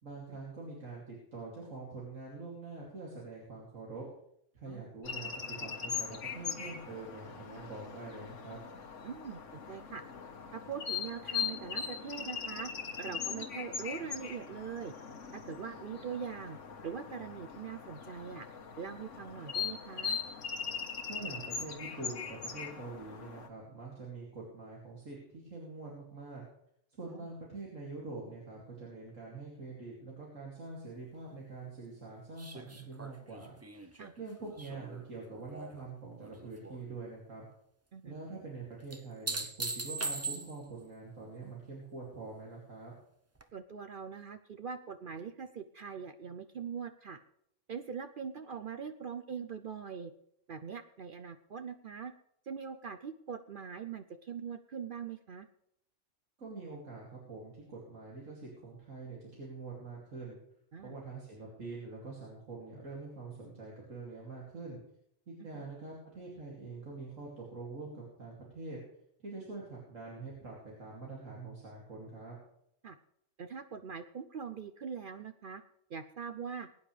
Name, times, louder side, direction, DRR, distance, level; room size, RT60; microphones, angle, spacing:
voice 1, 0.0-4.0 4.5-8.6 21.1-26.4 27.0-37.5 38.0-42.9 56.4-60.4 60.8-64.8 65.3-68.8 69.2-72.4, right 3 dB, 85° right, -3 dB, 3.0 m, -45 dB
sound 1, 5.0-23.5, left 7 dB, 70° left, 1.6 m, -40 dB
voice 2, 9.0-10.0 10.5-12.7 13.0-14.9 15.3-18.5 18.8-20.2 27.1-27.3 34.0-34.1 37.9-38.2 43.5-47.2 47.7-50.1 50.5-52.1 52.5-55.5 60.7-61.0 65.5-65.6 72.8-73.0 73.4-75.6 75.9-76.7, right 6 dB, 50° right, 9 dB, 0.7 m, -42 dB
sound 2, 32.4-35.8 36.2-36.8 38.9-40.8 43.4-43.5, right 3 dB, 20° right, 0.5 m, -40 dB
21.0 x 9.6 x 3.3 m, 0.74 s
omnidirectional pair, 1.3 m